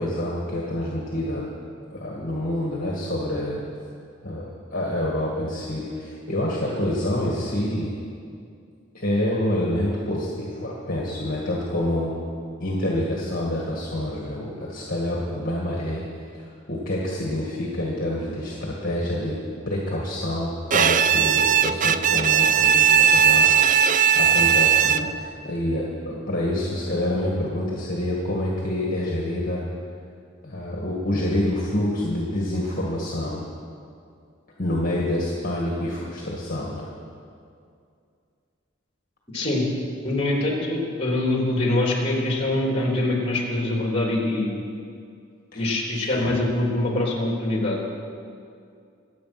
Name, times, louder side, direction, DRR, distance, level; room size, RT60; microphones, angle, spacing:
voice 1, 0.0-1.5 1.9-3.6 4.2-7.9 8.9-12.2 12.6-16.0 16.3-19.4 19.7-23.5 23.8-29.6 30.4-33.4 34.6-36.9 45.5-45.6 45.9-46.3, left 1 dB, 45° left, -3 dB, 2.1 m, -27 dB
Bowed string instrument, 20.7-25.3, right 8 dB, 40° right, 0.4 m, -18 dB
voice 2, 39.3-39.6 40.0-44.5 45.5-47.9, left 2 dB, 30° left, -2 dB, 3.2 m, -24 dB
25.0 x 8.5 x 6.1 m, 2.4 s
head